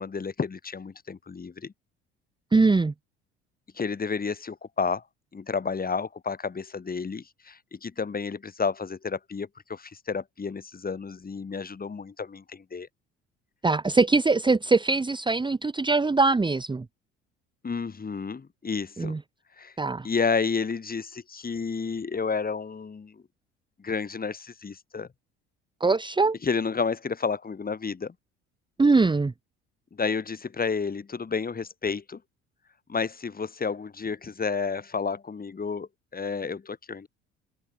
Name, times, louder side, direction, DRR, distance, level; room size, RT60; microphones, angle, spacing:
voice 1, 0.0-1.7 3.7-5.0 5.3-12.9 17.6-19.1 19.6-19.7 20.0-23.2 23.8-25.1 26.4-28.1 29.9-32.2 32.9-37.1, left 5 dB, 25° left, 6.9 m, -31 dB
voice 2, 2.5-2.9 13.6-16.8 19.0-19.2 19.8-20.1 25.8-26.4 28.8-29.3, right 3 dB, 15° right, 1.4 m, -22 dB
figure-of-eight pair, 55°, 33 cm